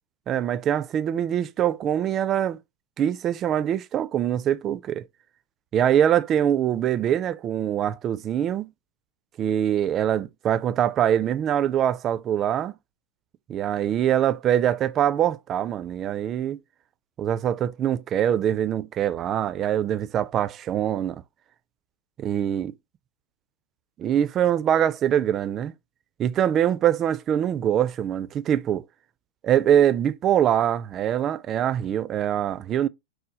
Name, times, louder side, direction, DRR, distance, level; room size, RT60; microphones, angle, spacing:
voice 1, 0.3-2.6 3.0-5.0 5.7-8.7 9.4-12.7 13.5-16.6 17.2-21.2 22.2-22.8 24.0-25.7 26.2-28.8 29.4-32.9, right 10 dB, 30° right, 0.3 m, -23 dB
6.3 x 2.1 x 3.9 m
figure-of-eight pair, 90°, 0 cm